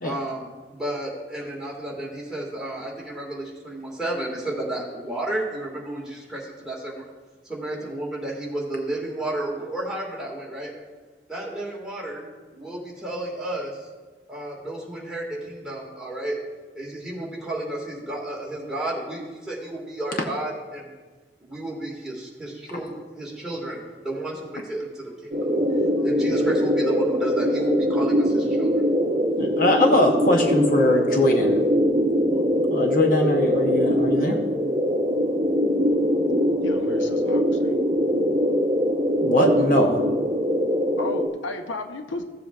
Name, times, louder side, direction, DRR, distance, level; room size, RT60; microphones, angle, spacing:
voice 1, 0.0-7.0 7.4-10.7 11.3-13.9 14.3-16.4 16.7-20.9 21.4-28.9, right 1 dB, 5° right, -5 dB, 1.7 m, -32 dB
sound 1, 25.3-41.3, equal, 40° right, 0.7 m, -22 dB
voice 2, 29.4-31.6 32.7-34.4 39.2-40.0, left 1 dB, 45° left, 1 dB, 0.7 m, -21 dB
voice 3, 36.6-37.8 41.0-42.2, left 3 dB, 90° left, 6 dB, 0.7 m, -34 dB
15.5 x 7.5 x 2.3 m, 1.3 s
head